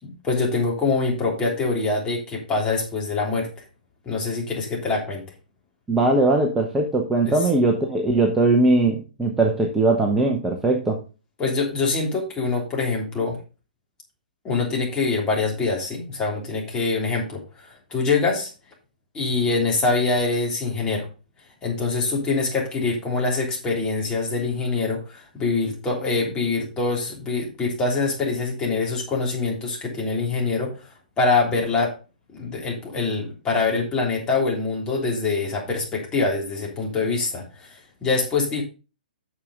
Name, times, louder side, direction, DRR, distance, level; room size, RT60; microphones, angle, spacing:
voice 1, 0.0-3.5 4.0-5.2 7.3-7.4 11.4-13.4 14.4-18.5 19.1-21.1 21.6-30.8 31.2-31.9 32.3-38.6, left 3 dB, 15° left, -1 dB, 3.2 m, -24 dB
voice 2, 5.9-11.0, right 2 dB, 10° right, 1 dB, 1.2 m, -20 dB
8.9 x 6.8 x 3.9 m, 0.32 s
figure-of-eight pair, 125°, 5 cm